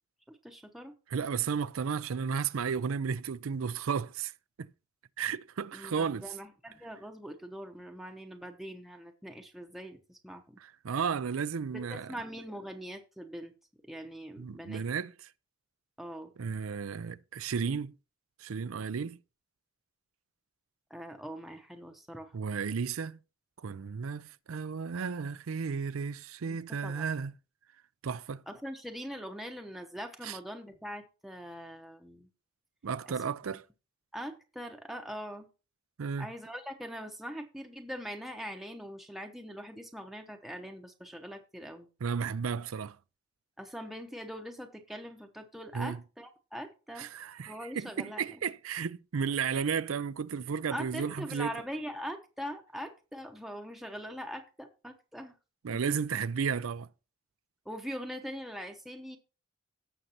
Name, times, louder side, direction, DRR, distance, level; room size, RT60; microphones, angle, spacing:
voice 1, 0.3-0.9 5.7-10.6 11.7-13.5 13.8-14.8 16.0-16.3 20.9-22.4 26.4-27.0 28.5-32.3 33.1-33.2 34.1-35.5 36.2-41.9 43.6-47.1 47.5-48.4 50.7-55.3 55.7-55.8 57.7-59.2, equal, ahead, 0.8 m, -42 dB
voice 2, 1.1-4.3 4.6-4.7 5.2-6.3 10.6-12.1 14.4-15.3 16.4-18.0 18.4-19.2 22.3-23.2 23.6-27.3 28.0-28.4 30.2-30.4 32.8-33.6 36.0-36.3 42.0-43.0 45.7-46.0 47.0-51.5 55.6-56.9, right 6 dB, 90° right, 0.5 m, -33 dB
17.0 x 6.5 x 2.9 m
head